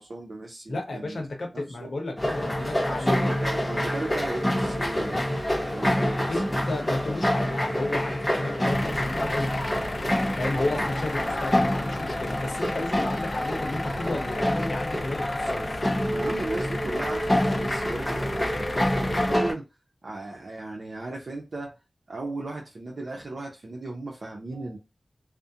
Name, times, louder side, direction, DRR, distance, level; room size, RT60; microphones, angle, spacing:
voice 1, 0.0-1.2 1.5-1.9 2.6-6.6 16.1-19.7 20.0-21.8 22.1-24.8, right 2 dB, 65° right, 0.6 m, -36 dB
voice 2, 0.7-3.3 4.9-5.1 6.3-9.8 10.4-15.7, left 2 dB, 75° left, 0.8 m, -33 dB
sound 1, 2.2-19.5, left 1 dB, 25° left, 0.9 m, -27 dB
sound 2, 3.4-8.6, right 1 dB, 35° right, 0.9 m, -43 dB
sound 3, 8.7-19.4, left 2 dB, 50° left, 0.3 m, -36 dB
2.4 x 2.1 x 2.7 m
cardioid pair, 45°, 0 cm